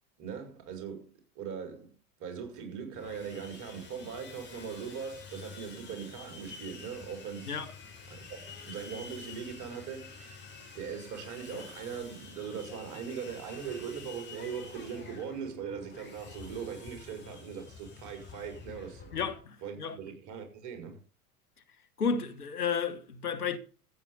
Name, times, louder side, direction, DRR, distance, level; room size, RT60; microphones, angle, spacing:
voice 1, 0.2-1.1 1.4-1.9 2.2-7.6 8.1-10.3 10.7-19.1 19.6-21.0, right 7 dB, 40° right, 5.8 m, -40 dB
Sawing, 2.9-19.4, left 5 dB, 25° left, 6.4 m, -48 dB
voice 2, 19.1-20.0 22.0-23.6, left 6 dB, 75° left, 1.6 m, -32 dB
14.5 x 8.9 x 5.6 m
figure-of-eight pair, 80°, 46 cm